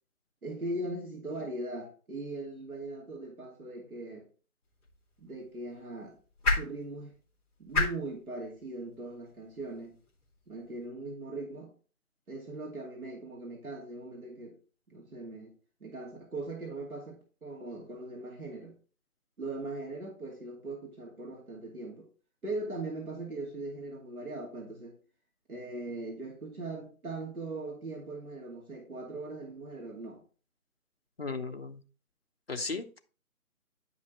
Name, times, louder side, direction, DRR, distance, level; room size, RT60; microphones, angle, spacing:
voice 1, 0.4-4.3 5.2-6.2 6.5-7.1 7.6-10.0 10.5-11.7 12.3-14.6 14.9-15.5 15.8-18.7 19.4-22.1 22.4-25.0 25.5-30.2, right 2 dB, 75° right, 2.4 m, -40 dB
sound 1, 4.6-10.9, left 3 dB, 5° left, 2.3 m, -36 dB
voice 2, 31.2-31.8 32.5-33.0, left 4 dB, 45° left, 0.8 m, -36 dB
10.5 x 5.5 x 3.1 m
figure-of-eight pair, 165°, 44 cm